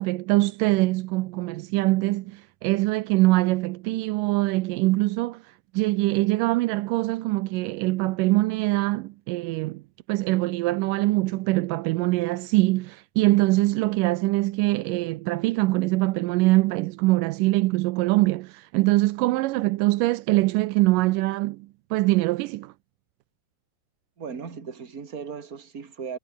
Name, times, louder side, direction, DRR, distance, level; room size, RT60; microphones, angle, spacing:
voice 1, 0.0-5.4 5.7-9.8 10.1-22.7, right 20 dB, 85° right, 2.2 m, -23 dB
voice 2, 24.2-26.2, right 6 dB, 30° right, 2.6 m, -37 dB
omnidirectional pair, 3.8 m